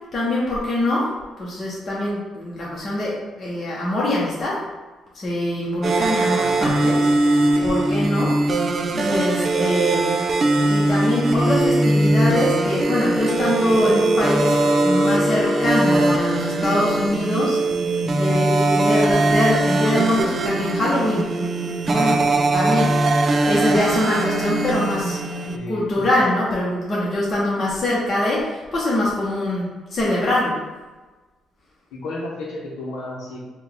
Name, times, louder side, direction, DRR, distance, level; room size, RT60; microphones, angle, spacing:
voice 1, 0.1-1.1 1.4-4.6 5.1-8.3 8.9-10.1 10.6-17.6 18.2-21.2 21.9-22.2 22.5-25.2 25.7-30.6, left 1 dB, 40° left, -6 dB, 0.9 m, -23 dB
sound 1, 5.8-25.6, right 2 dB, 45° right, 0.4 m, -20 dB
voice 2, 6.2-6.8 25.5-26.1 31.9-33.5, left 1 dB, 90° left, -3 dB, 0.8 m, -33 dB
Wind instrument woodwind instrument, 11.5-17.2, left 3 dB, 25° right, 0.8 m, -29 dB
4.2 x 2.3 x 3.5 m, 1.2 s
cardioid pair, 90°, 0 cm